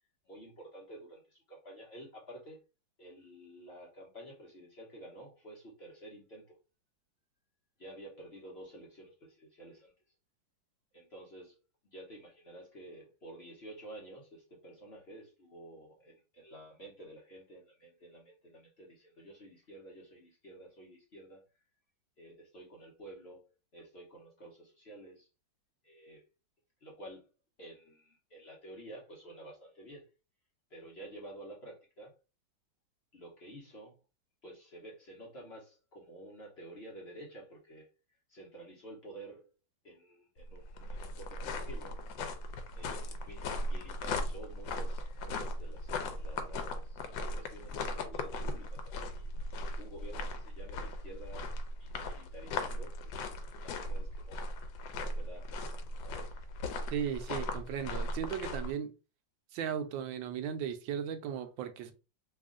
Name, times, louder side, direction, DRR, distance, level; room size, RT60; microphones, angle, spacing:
voice 1, 0.2-2.6 3.0-6.6 7.8-9.9 10.9-11.6 11.9-21.4 22.2-25.3 25.8-26.2 26.8-27.3 27.6-30.1 30.7-32.1 33.1-34.0 34.4-37.9 38.3-39.5 39.8-42.0 42.7-49.3 49.8-51.5 51.8-53.2 53.6-54.4 55.0-55.5 56.0-56.6, right 1 dB, 45° left, 0.9 m, -51 dB
sound 1, 40.4-58.7, left 2 dB, 85° left, 1.3 m, -38 dB
voice 2, 56.9-58.9 59.5-61.9, right 8 dB, 85° right, 1.3 m, -36 dB
3.4 x 2.4 x 3.7 m
omnidirectional pair, 2.0 m